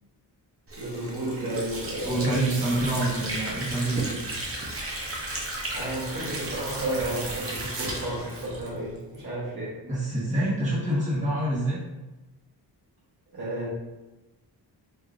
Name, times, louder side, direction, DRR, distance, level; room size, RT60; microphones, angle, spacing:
Water / Sink (filling or washing), 0.7-9.2, right 1 dB, 30° right, 0.7 m, -34 dB
voice 1, 0.8-2.4 5.7-9.8 13.3-13.7, right 1 dB, 55° right, -7 dB, 1.2 m, -32 dB
voice 2, 2.0-4.2 9.8-11.8, right 1 dB, 15° right, -11 dB, 1.1 m, -26 dB
sound 1, 2.5-7.9, right 5 dB, 75° right, 0.6 m, -43 dB
4.9 x 2.7 x 2.4 m, 1.1 s
wide cardioid pair, 170°, 43 cm